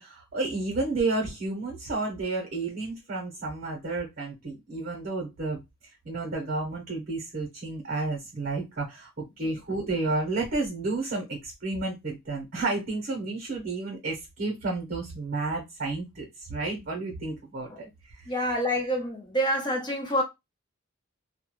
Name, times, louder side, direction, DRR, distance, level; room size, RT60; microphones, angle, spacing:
voice 1, 0.0-5.6 6.0-18.3, right 3 dB, 45° right, 0.8 m, -31 dB
voice 2, 18.3-20.2, equal, 20° left, 0.7 m, -27 dB
2.2 x 2.2 x 3.0 m
head